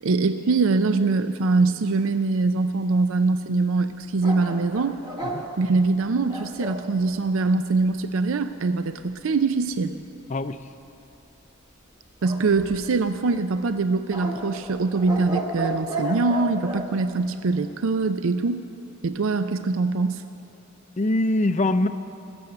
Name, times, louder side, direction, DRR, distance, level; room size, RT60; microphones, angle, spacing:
voice 1, 0.0-5.0 5.6-9.9 12.2-18.6 19.0-20.2, right 3 dB, 70° right, 10 dB, 0.5 m, -23 dB
sound 1, 4.2-6.9 12.2-13.1 14.1-16.9, right 1 dB, 20° right, 1.1 m, -32 dB
voice 2, 21.0-21.9, left 2 dB, 30° left, 11 dB, 0.4 m, -22 dB
21.0 x 7.0 x 7.9 m, 2.8 s
head